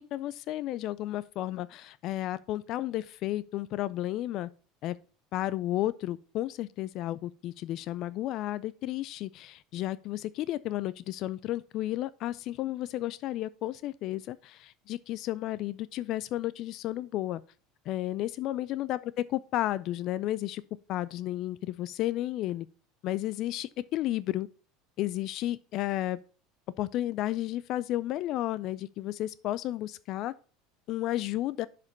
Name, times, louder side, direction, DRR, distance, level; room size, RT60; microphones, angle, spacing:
voice 1, 0.0-4.5 4.8-5.0 5.3-17.4 17.9-20.6 20.9-22.7 23.0-24.5 25.0-26.2 26.8-30.3 30.9-31.7, left 14 dB, 55° left, 0.3 m, -32 dB
6.3 x 5.0 x 5.3 m
hypercardioid pair, 80°, 0 cm